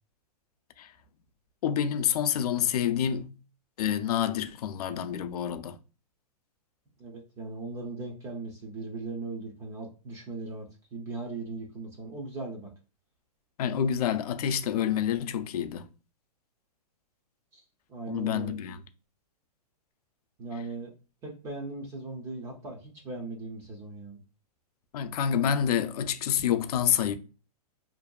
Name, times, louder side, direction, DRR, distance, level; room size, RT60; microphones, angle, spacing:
voice 1, 1.6-3.3 3.8-5.8 13.6-15.9 18.1-18.8 24.9-27.1, left 9 dB, 70° left, 0.4 m, -28 dB
voice 2, 7.0-12.7 17.5-17.6 17.9-18.5 20.4-20.9 21.2-24.2, right 3 dB, 15° right, 0.4 m, -38 dB
2.6 x 2.2 x 2.2 m
hypercardioid pair, 155°, 20 cm